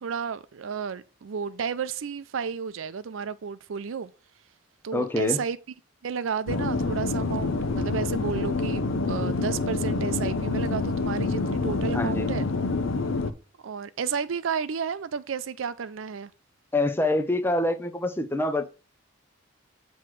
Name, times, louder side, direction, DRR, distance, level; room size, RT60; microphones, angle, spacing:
voice 1, 0.0-4.1 4.8-5.6 6.0-12.5 13.6-16.3, right 6 dB, 75° right, 0.5 m, -32 dB
voice 2, 4.9-5.4 11.9-12.3 16.7-18.7, left 2 dB, 10° left, 0.5 m, -25 dB
sound 1, 6.5-13.3, left 3 dB, 75° left, 0.7 m, -27 dB
7.6 x 3.1 x 6.1 m
head